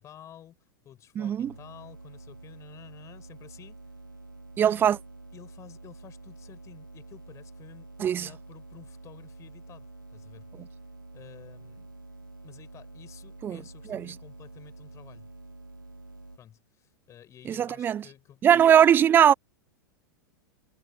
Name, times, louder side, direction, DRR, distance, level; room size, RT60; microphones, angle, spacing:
voice 1, 0.0-3.9 4.6-4.8 5.3-7.9 8.2-10.7 11.1-11.9 12.4-15.3 16.4-18.9, left 10 dB, 30° left, 7.2 m, -52 dB
voice 2, 1.2-1.5 4.6-5.0 8.0-8.3 13.4-13.6 13.9-14.0 17.5-18.0 18.4-19.3, right 9 dB, 20° right, 0.3 m, -20 dB
sound 1, 1.4-16.4, right 2 dB, 85° right, 6.3 m, -47 dB
figure-of-eight pair, 95°, 11 cm